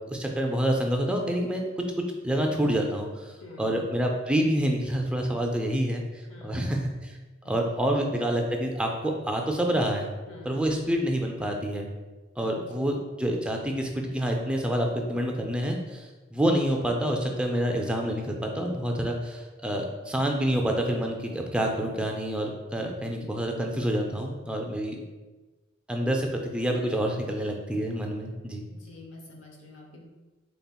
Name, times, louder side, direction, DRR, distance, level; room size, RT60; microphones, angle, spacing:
voice 1, 0.1-1.7 2.2-3.1 3.6-6.0 6.4-7.2 7.5-10.1 10.5-11.9 12.4-25.0 25.9-28.6, equal, 5° right, 1 dB, 0.3 m, -27 dB
voice 2, 3.4-3.8 6.3-6.7 7.4-7.9 10.3-10.6 12.4-12.9 28.7-30.0, left 2 dB, 85° left, 0 dB, 0.8 m, -47 dB
4.2 x 3.4 x 2.2 m, 1.2 s
head